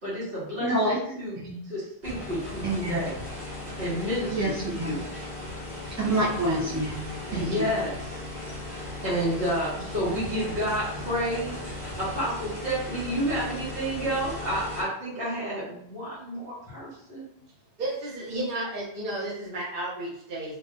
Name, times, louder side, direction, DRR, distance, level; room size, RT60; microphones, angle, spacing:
voice 1, 0.0-3.2 3.8-5.1 7.3-8.2 8.7-11.6 12.0-17.3, equal, 70° right, -10 dB, 1.4 m, -30 dB
voice 2, 0.6-1.0 1.4-1.5 2.6-3.0 4.3-4.9 6.0-7.0 7.3-7.7, right 1 dB, 25° right, -6 dB, 0.4 m, -27 dB
sound 1, 2.0-14.8, left 1 dB, 85° right, 2.0 m, -37 dB
voice 3, 17.8-20.6, right 1 dB, 50° right, -5 dB, 0.9 m, -32 dB
3.4 x 2.3 x 2.6 m, 0.71 s
omnidirectional pair, 1.1 m